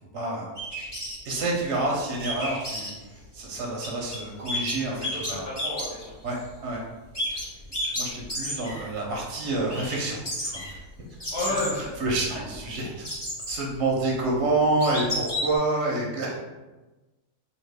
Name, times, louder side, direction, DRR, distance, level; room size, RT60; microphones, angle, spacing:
voice 1, 0.1-0.5 1.2-5.4 6.2-6.8 7.3-7.5 7.8-10.6 11.5-11.6 12.0-13.1 13.5-16.4, right 2 dB, 60° right, -3 dB, 0.7 m, -28 dB
sound 1, 0.6-1.3 2.2-2.9 3.8-4.2 4.5-6.5 7.1-8.9 9.2-9.3 9.7-10.0 10.3-12.6 13.0-13.7 14.2-14.3 14.8-15.6, left 1 dB, 20° left, 0.8 m, -31 dB
voice 2, 4.9-6.2 11.3-12.0, left 2 dB, 85° left, -6 dB, 1.8 m, -31 dB
3.4 x 2.3 x 3.3 m, 1.1 s
omnidirectional pair, 1.7 m